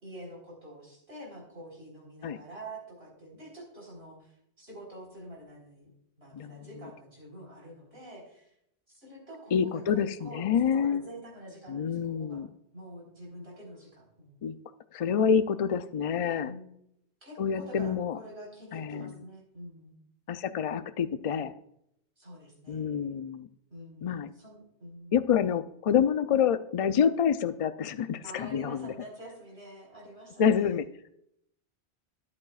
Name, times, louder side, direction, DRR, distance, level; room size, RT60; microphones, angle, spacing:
voice 1, 0.0-5.9 6.2-8.5 8.9-10.4 10.7-12.4 12.7-14.4 16.4-16.7 17.2-20.0 22.2-22.8 23.7-25.2 28.2-30.9, right 1 dB, 65° right, -2 dB, 4.6 m, -47 dB
voice 2, 6.3-6.7 9.5-11.0 11.7-12.5 14.4-14.6 14.9-16.5 17.4-18.2 18.7-19.1 20.3-21.5 22.7-23.5 24.0-24.3 25.1-28.9 30.4-30.9, left 7 dB, 55° left, 12 dB, 0.4 m, -27 dB
13.0 x 10.5 x 2.4 m, 0.75 s
omnidirectional pair, 1.1 m